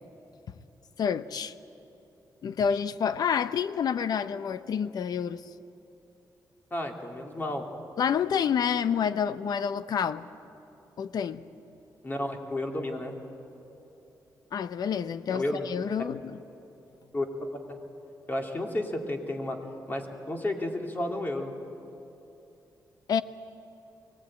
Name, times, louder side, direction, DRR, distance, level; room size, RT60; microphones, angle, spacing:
voice 1, 1.0-1.5 2.4-5.4 8.0-10.3 11.0-11.4 14.5-16.4 23.1-23.2, left 7 dB, 65° left, 13 dB, 0.8 m, -28 dB
voice 2, 6.7-7.6 12.0-13.1 15.3-15.6 17.1-17.3 17.7-17.8 18.3-19.6 19.9-21.5, left 1 dB, 25° left, 2 dB, 2.8 m, -32 dB
24.0 x 19.0 x 8.8 m, 2.9 s
cardioid pair, 100°, 7 cm